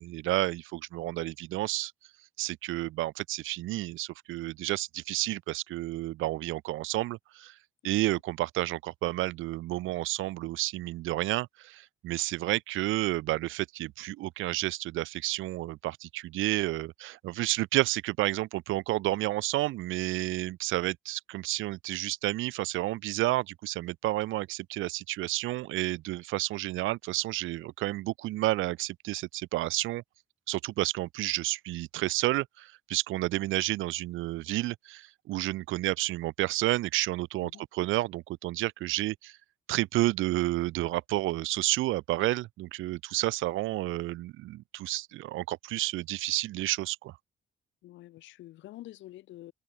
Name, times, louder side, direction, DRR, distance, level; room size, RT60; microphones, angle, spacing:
voice 1, 0.0-1.9 2.4-7.5 7.8-30.0 30.5-39.4 39.7-47.1, right 17 dB, 85° right, 0.6 m, -31 dB
voice 2, 47.8-49.5, left 15 dB, 75° left, 0.5 m, -47 dB
cardioid pair, 90°, 20 cm